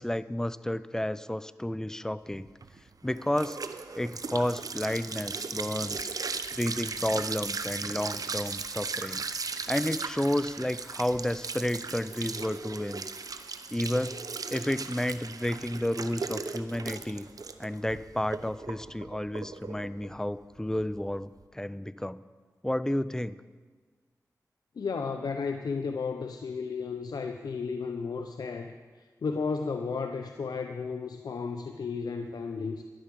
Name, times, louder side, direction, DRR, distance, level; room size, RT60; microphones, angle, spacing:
voice 1, 0.0-2.5 3.0-3.6 4.0-6.1 6.6-9.2 9.7-13.1 13.7-14.2 14.5-17.3 17.6-22.2 22.6-23.4, left 1 dB, 10° left, 16 dB, 0.5 m, -31 dB
sound 1, 2.4-21.4, right 4 dB, 65° right, 0.7 m, -37 dB
voice 2, 24.8-32.8, left 5 dB, 80° left, 6 dB, 0.6 m, -33 dB
13.0 x 11.0 x 5.3 m, 1.5 s
cardioid pair, 45°, 7 cm